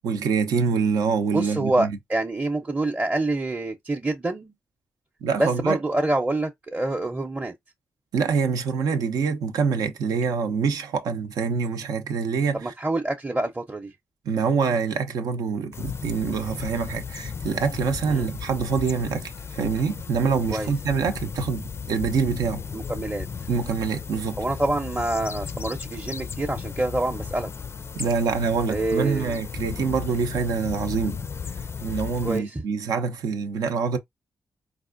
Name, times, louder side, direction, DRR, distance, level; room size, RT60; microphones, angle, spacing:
voice 1, 0.0-2.0 5.2-5.8 8.1-12.7 14.2-22.6 23.5-24.4 27.9-31.2 31.8-34.0, right 5 dB, 85° right, 0.7 m, -25 dB
voice 2, 1.3-4.5 5.4-7.5 12.5-13.9 18.1-18.3 20.5-20.7 22.7-23.3 24.4-27.5 28.7-29.4 32.2-32.6, right 2 dB, 20° right, 0.7 m, -26 dB
sound 1, 15.7-32.4, left 6 dB, 45° left, 0.4 m, -35 dB
4.1 x 2.5 x 2.5 m
cardioid pair, 60°, 6 cm